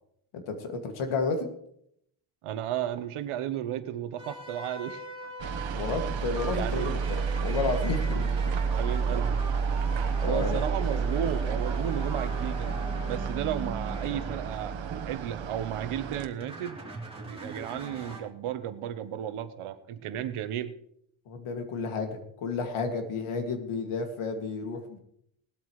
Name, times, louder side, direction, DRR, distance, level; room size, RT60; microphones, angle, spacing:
voice 1, 0.3-1.5 5.7-8.6 8.9-9.0 10.2-10.6 21.3-25.0, left 4 dB, 85° left, 5 dB, 2.2 m, -32 dB
voice 2, 2.4-5.0 6.5-6.9 8.8-9.4 10.2-12.7 13.0-16.8 17.2-20.7, right 11 dB, 85° right, 11 dB, 1.1 m, -34 dB
Lead Guitar Key of E, 4.2-15.6 16.1-18.2, right 2 dB, 10° right, 3.0 m, -41 dB
sound 1, 5.4-16.3, right 5 dB, 65° right, 1.3 m, -30 dB
18.5 x 12.5 x 3.2 m, 0.73 s
cardioid pair, 135°, 49 cm